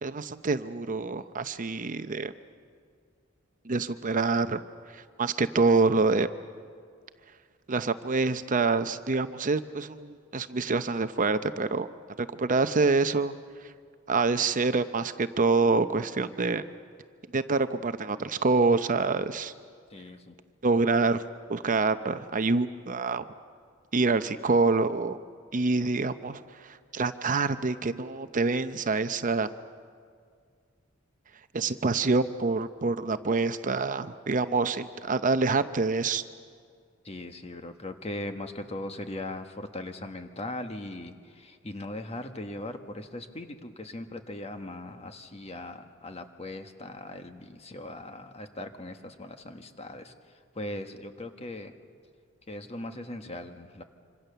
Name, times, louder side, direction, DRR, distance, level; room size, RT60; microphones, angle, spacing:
voice 1, 0.0-2.3 3.6-4.6 4.9-6.3 7.7-11.9 12.2-13.3 14.1-16.6 17.3-19.5 20.6-21.2 21.5-23.2 23.9-25.2 25.5-29.5 31.5-36.2, right 3 dB, 40° right, 11 dB, 0.7 m, -26 dB
voice 2, 19.9-20.3 37.0-50.1 50.5-51.7 52.5-53.8, left 1 dB, 30° left, 7 dB, 1.5 m, -39 dB
26.5 x 26.0 x 6.9 m, 2.1 s
head